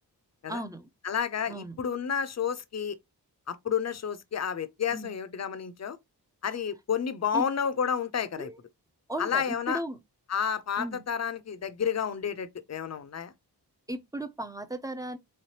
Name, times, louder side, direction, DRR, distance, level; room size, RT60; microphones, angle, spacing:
voice 1, 0.5-0.9 1.5-1.8 4.9-5.1 7.3-7.4 8.4-8.6 9.1-10.0 10.8-11.0 13.9-15.2, right 1 dB, 10° right, 0.5 m, -36 dB
voice 2, 1.0-3.0 3.5-6.0 6.4-8.5 9.2-9.8 10.3-13.3, left 7 dB, 40° left, 0.5 m, -30 dB
3.4 x 3.2 x 2.8 m
wide cardioid pair, 80°, 40 cm